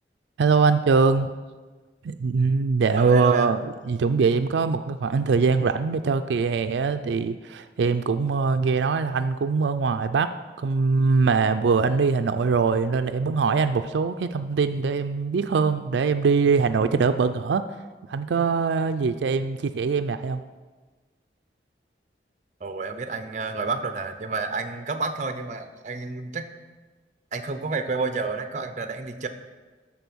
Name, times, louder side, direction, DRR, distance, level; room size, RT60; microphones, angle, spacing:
voice 1, 0.4-1.3 2.0-10.3 10.6-17.6 18.1-20.4, right 4 dB, 85° right, 9 dB, 0.4 m, -22 dB
voice 2, 3.0-3.5 22.6-26.5 27.3-29.3, right 4 dB, 40° right, 8 dB, 0.6 m, -30 dB
12.5 x 4.3 x 6.2 m, 1.3 s
head